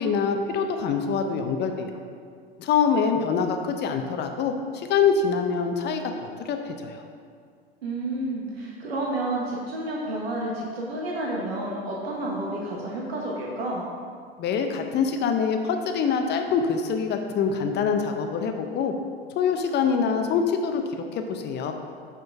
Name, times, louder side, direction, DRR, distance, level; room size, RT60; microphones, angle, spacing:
voice 1, 0.0-1.9 2.6-7.0 14.4-18.9 19.4-21.7, left 6 dB, 35° left, 5 dB, 0.6 m, -25 dB
voice 2, 7.8-13.9, right 1 dB, 80° right, -2 dB, 1.1 m, -30 dB
7.7 x 3.8 x 4.6 m, 2.1 s
hypercardioid pair, 95°, 30 cm